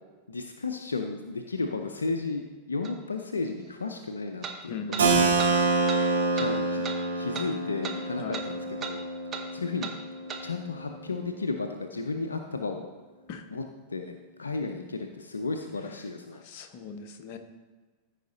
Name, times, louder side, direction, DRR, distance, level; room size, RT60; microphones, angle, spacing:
voice 1, 0.3-5.2 6.3-6.8 7.1-9.0 9.5-9.9 10.4-12.8 13.5-13.6 13.9-16.4, left 3 dB, 75° left, 5 dB, 0.6 m, -33 dB
sound 1, 2.8-2.9 4.4-4.6 4.9-5.1 5.4-5.5 5.9-6.0 6.4-6.5 6.8-7.0 7.3-7.5 7.8-8.0 8.3-8.5 8.8-9.0 9.3-9.5 9.8-10.0 10.3-10.4, right 6 dB, 25° right, 1.0 m, -36 dB
voice 2, 4.7-5.5 8.2-8.5 13.3-13.4 16.3-17.4, left 4 dB, 45° left, 6 dB, 0.9 m, -39 dB
Keyboard (musical), 5.0-10.5, right 3 dB, 65° right, 1.7 m, -27 dB
14.0 x 5.0 x 3.9 m, 1.4 s
figure-of-eight pair, 90°, 0 cm